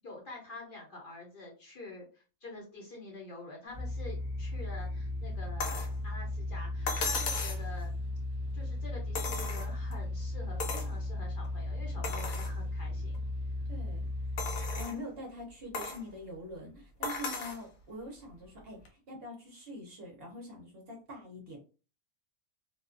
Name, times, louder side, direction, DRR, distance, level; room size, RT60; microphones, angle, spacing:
voice 1, 0.0-7.9 8.5-13.3, left 2 dB, 45° left, -2 dB, 0.7 m, -47 dB
sound 1, 3.7-14.8, left 2 dB, 20° left, 0.8 m, -36 dB
sound 2, 5.6-5.9 6.9-7.7 9.1-9.9 10.6-10.9 11.4-11.5 12.0-12.5 13.1-13.2 14.4-15.0 15.7-16.0 17.0-17.6 18.9-19.0, left 4 dB, 75° left, 1.0 m, -36 dB
voice 2, 13.7-14.1 14.8-21.6, left 1 dB, 55° right, 0 dB, 0.7 m, -44 dB
2.4 x 2.2 x 2.4 m, 0.35 s
omnidirectional pair, 1.6 m